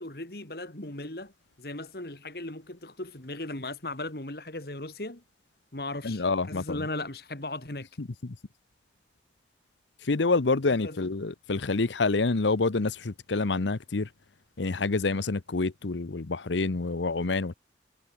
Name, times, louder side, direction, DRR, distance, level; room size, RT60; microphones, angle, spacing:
voice 1, 0.0-1.3 1.6-5.2 5.7-7.9 10.8-11.1, left 2 dB, 55° left, 2.5 m, -37 dB
voice 2, 6.0-6.8 8.0-8.3 10.0-14.1 14.6-17.5, left 3 dB, 85° left, 0.9 m, -27 dB
head